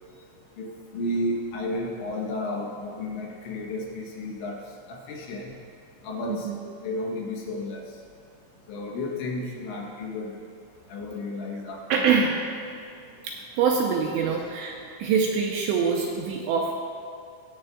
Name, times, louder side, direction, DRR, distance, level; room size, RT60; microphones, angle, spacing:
voice 1, 0.6-4.6 4.9-5.5 6.0-6.5 6.8-7.9 8.7-10.4 10.9-12.2, left 1 dB, 75° left, -1 dB, 3.2 m, -32 dB
voice 2, 11.9-12.4 13.2-16.7, right 6 dB, 85° right, 0 dB, 2.6 m, -25 dB
19.0 x 7.6 x 2.4 m, 2.4 s
omnidirectional pair, 5.6 m